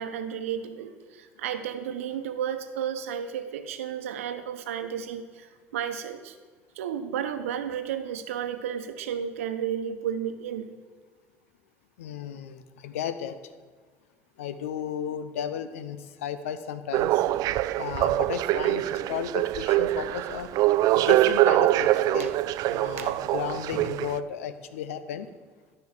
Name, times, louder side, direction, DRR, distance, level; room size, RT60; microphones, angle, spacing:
voice 1, 0.0-6.3 6.8-10.7 22.2-22.3 23.0-23.1, right 8 dB, 85° right, 9 dB, 0.9 m, -33 dB
voice 2, 12.0-13.4 14.4-17.3 17.8-20.5 21.0-22.3 22.7-25.3, left 8 dB, 85° left, 12 dB, 0.7 m, -34 dB
sound 1, 16.9-24.2, right 15 dB, 60° right, 0.4 m, -24 dB
13.0 x 5.5 x 6.7 m, 1.5 s
hypercardioid pair, 70°, 7 cm